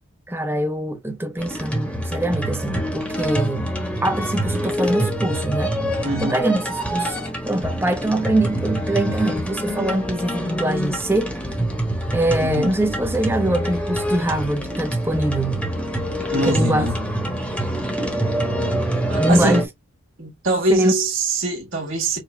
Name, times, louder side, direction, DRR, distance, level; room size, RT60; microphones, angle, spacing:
voice 1, 0.3-3.7 4.0-5.7 6.2-6.6 6.9-7.2 7.5-11.4 12.1-15.6 16.5-16.9 19.2-19.6 20.7-20.9, right 1 dB, 10° right, 0.7 m, -23 dB
sound 1, 1.4-19.7, right 1 dB, 5° left, 1.1 m, -25 dB
voice 2, 6.0-6.4 12.4-12.7 16.3-17.1 19.1-19.6 20.2-22.2, right 2 dB, 65° right, 1.6 m, -23 dB
5.0 x 2.3 x 3.1 m
head